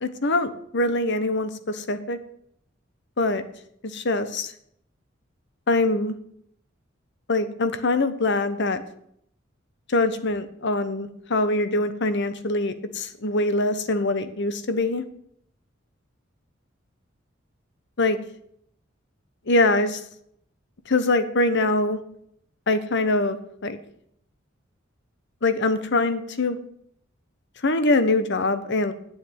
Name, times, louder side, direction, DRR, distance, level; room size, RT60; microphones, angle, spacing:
voice 1, 0.0-2.2 3.2-3.4 3.9-4.5 5.7-6.2 7.3-8.8 9.9-15.0 18.0-18.2 19.5-20.0 20.9-22.0 22.7-23.8 25.4-26.6 27.6-28.9, left 2 dB, 60° left, 11 dB, 1.1 m, -23 dB
8.7 x 7.3 x 8.7 m, 0.70 s
head